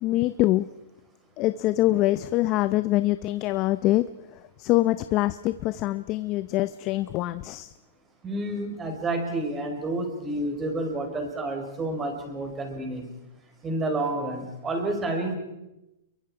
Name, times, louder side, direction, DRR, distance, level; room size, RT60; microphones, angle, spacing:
voice 1, 0.0-0.7 1.4-4.1 4.3-7.7, left 16 dB, 30° left, 13 dB, 0.7 m, -24 dB
voice 2, 8.2-13.1 13.6-15.4, right 2 dB, 15° right, 4 dB, 4.9 m, -29 dB
29.0 x 23.0 x 4.9 m, 0.95 s
hypercardioid pair, 150°, 0 cm